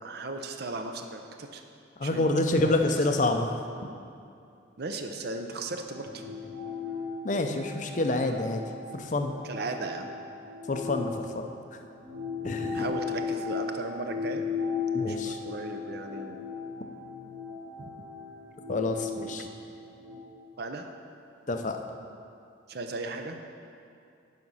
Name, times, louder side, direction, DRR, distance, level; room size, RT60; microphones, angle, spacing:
voice 1, 0.0-1.6 2.0-2.2 2.5-2.7 4.8-6.2 9.5-10.1 12.7-14.4 15.1-16.4 17.8-17.9 20.6-20.9 22.7-23.4, right 3 dB, 55° right, 5 dB, 0.6 m, -36 dB
voice 2, 2.0-3.5 7.2-8.6 8.9-9.3 10.7-11.5 12.4-12.9 14.9-15.4 18.7-19.5 21.5-21.8, left 2 dB, 40° left, 5 dB, 0.6 m, -27 dB
sound 1, 5.7-11.5 12.0-20.2, left 5 dB, 70° right, 2.2 m, -36 dB
11.0 x 5.1 x 5.6 m, 2.5 s
head